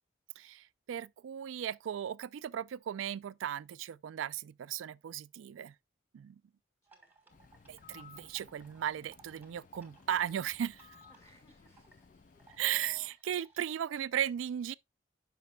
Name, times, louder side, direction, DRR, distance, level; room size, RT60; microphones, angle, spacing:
voice 1, 0.4-5.7 6.1-6.4 7.7-10.9 12.6-14.7, right 10 dB, 85° right, 0.3 m, -36 dB
voice 2, 6.9-7.4 11.1-12.5, left 1 dB, 15° left, 2.0 m, -66 dB
sound 1, 6.9-13.6, right 4 dB, 10° right, 1.4 m, -64 dB
Bird, 7.3-13.1, left 5 dB, 40° left, 0.4 m, -59 dB
12.0 x 5.1 x 2.2 m
head